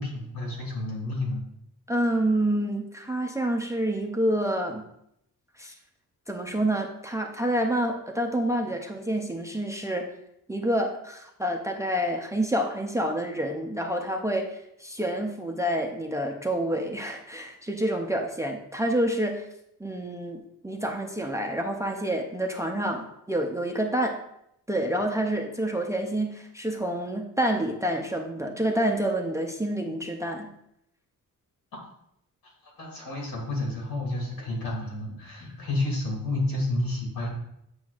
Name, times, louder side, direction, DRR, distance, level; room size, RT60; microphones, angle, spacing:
voice 1, 0.0-1.4 32.4-32.5 32.8-37.4, left 2 dB, 80° left, -2 dB, 2.5 m, -30 dB
voice 2, 1.9-4.8 5.6-5.7 6.3-10.1 10.5-19.5 19.8-24.2 24.7-30.5, right 1 dB, 10° right, 2 dB, 0.5 m, -28 dB
9.1 x 6.1 x 2.4 m, 0.76 s
wide cardioid pair, 180°, 34 cm